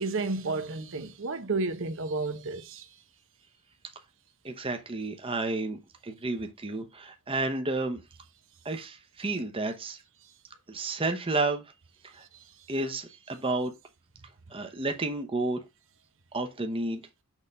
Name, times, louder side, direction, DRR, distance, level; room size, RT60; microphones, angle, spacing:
voice 1, 0.0-2.9, right 3 dB, 60° right, 0.8 m, -31 dB
voice 2, 4.4-5.8 6.0-8.0 8.6-10.0 10.7-11.7 12.1-12.3 12.7-13.7 14.5-15.6 16.3-17.0, right 2 dB, 25° right, 0.9 m, -31 dB
6.4 x 3.7 x 5.3 m
head